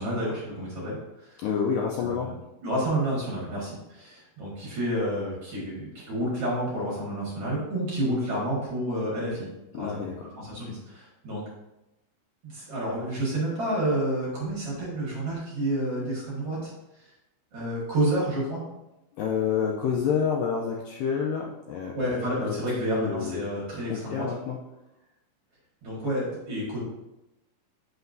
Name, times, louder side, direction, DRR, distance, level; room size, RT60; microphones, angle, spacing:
voice 1, 0.0-1.4 2.0-2.3 2.6-9.5 9.8-10.0 10.4-11.4 12.4-16.7 17.5-18.6 21.9-24.3 25.8-26.8, right 1 dB, 50° right, -6 dB, 2.2 m, -29 dB
voice 2, 1.4-2.3 9.7-10.3 19.2-21.9 22.4-22.6 22.9-23.5 23.9-24.6, left 7 dB, 85° left, -1 dB, 2.0 m, -28 dB
8.0 x 5.7 x 2.6 m, 0.94 s
omnidirectional pair, 4.6 m